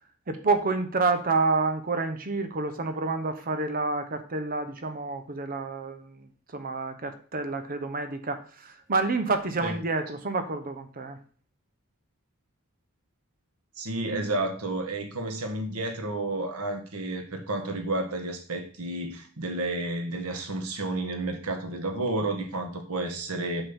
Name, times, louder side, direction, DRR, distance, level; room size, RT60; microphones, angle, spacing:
voice 1, 0.3-11.2, right 3 dB, 40° right, 8 dB, 1.0 m, -28 dB
voice 2, 13.8-23.6, right 2 dB, 85° right, 5 dB, 1.8 m, -31 dB
8.9 x 3.9 x 7.1 m, 0.41 s
head